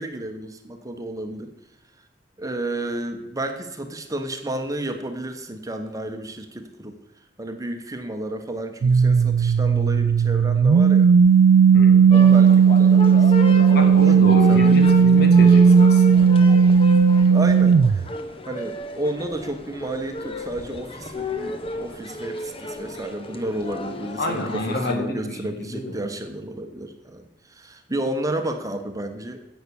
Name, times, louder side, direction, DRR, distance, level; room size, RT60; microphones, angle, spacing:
voice 1, 0.0-1.5 2.4-7.0 7.4-11.1 12.1-14.8 17.3-18.1 18.5-29.4, right 1 dB, 20° right, 6 dB, 1.1 m, -32 dB
sound 1, 8.8-18.1, right 6 dB, 65° right, 0.3 m, -15 dB
voice 2, 11.7-12.1 13.7-16.3 24.2-26.0, left 1 dB, 60° left, 5 dB, 2.0 m, -28 dB
sound 2, 12.1-24.9, left 1 dB, 30° left, 1.0 m, -33 dB
11.0 x 8.1 x 7.0 m, 0.88 s
head